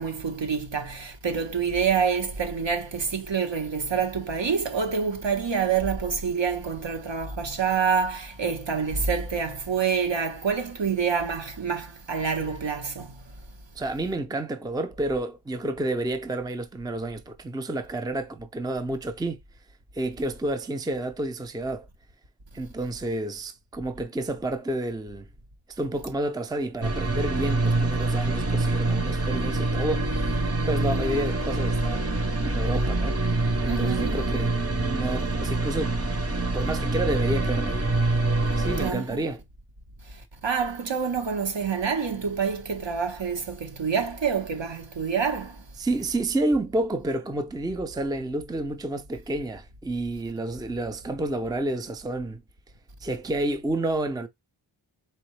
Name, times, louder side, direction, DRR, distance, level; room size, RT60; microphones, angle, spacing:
voice 1, 0.0-13.1 33.7-34.1 38.8-39.2 40.4-45.6, right 6 dB, 65° right, 1.3 m, -27 dB
voice 2, 13.8-19.4 19.9-21.9 22.5-25.2 25.7-33.2 33.6-34.5 34.9-36.0 36.5-37.9 38.6-39.4 45.8-52.4 53.0-54.3, right 1 dB, 10° right, 0.5 m, -30 dB
sound 1, 26.8-38.9, right 2 dB, 30° right, 1.0 m, -25 dB
4.3 x 3.6 x 3.2 m
wide cardioid pair, 65°, 48 cm